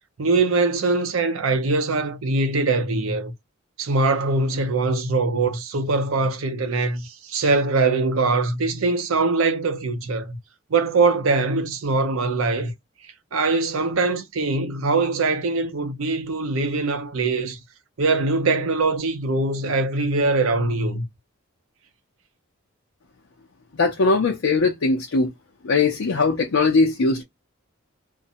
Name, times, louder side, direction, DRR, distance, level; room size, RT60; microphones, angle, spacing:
voice 1, 0.2-3.3 3.8-10.4 10.7-12.7 13.3-17.6 18.0-21.0, right 3 dB, 80° right, 0.6 m, -22 dB
voice 2, 23.8-25.3 25.6-27.2, left 3 dB, 80° left, 0.6 m, -20 dB
2.6 x 2.1 x 2.6 m
head